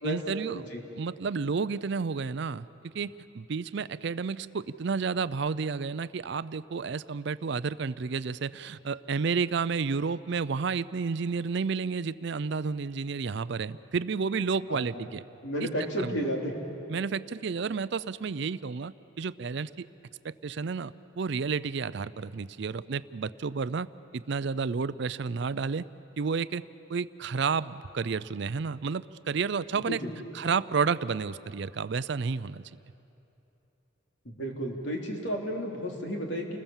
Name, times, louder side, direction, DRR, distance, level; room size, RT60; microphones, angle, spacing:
voice 1, 0.0-0.6 0.9-15.2 15.6-15.7 16.0-16.2 16.9-19.9 20.2-23.9 24.1-25.9 26.2-26.6 26.9-30.0 30.3-32.6, right 5 dB, 55° right, 16 dB, 0.4 m, -31 dB
voice 2, 14.7-15.0 15.4-16.5 29.7-30.2 34.2-36.6, equal, 60° left, 1 dB, 3.3 m, -32 dB
29.5 x 20.5 x 7.2 m, 3.0 s
head